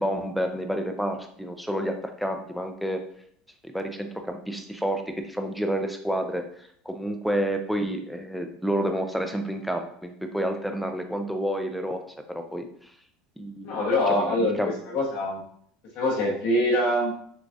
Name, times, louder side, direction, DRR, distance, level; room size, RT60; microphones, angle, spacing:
voice 1, 0.0-3.0 3.6-12.0 12.3-12.7 13.4-13.8 14.2-14.7, equal, ahead, 4 dB, 0.3 m, -29 dB
voice 2, 13.6-15.4 15.9-17.1, left 1 dB, 45° left, -2 dB, 1.2 m, -24 dB
6.1 x 2.3 x 2.6 m, 0.64 s
cardioid pair, 175°, 3 cm